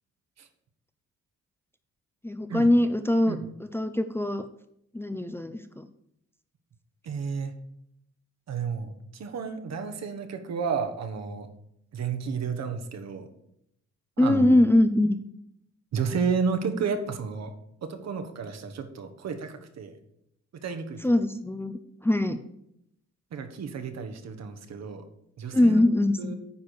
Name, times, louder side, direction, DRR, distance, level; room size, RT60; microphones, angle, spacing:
voice 1, 2.2-3.4 3.7-4.4 4.9-5.9 14.2-15.2 21.0-21.7 22.0-22.4 25.5-26.3, left 1 dB, 10° left, 8 dB, 0.5 m, -22 dB
voice 2, 7.0-7.5 8.5-11.5 11.9-13.3 14.2-14.5 15.9-17.5 17.8-20.0 20.6-21.0 23.3-25.0 25.4-25.8 26.2-26.3, right 5 dB, 60° right, 7 dB, 1.3 m, -31 dB
9.5 x 4.4 x 6.5 m, 0.77 s
cardioid pair, 90°, 30 cm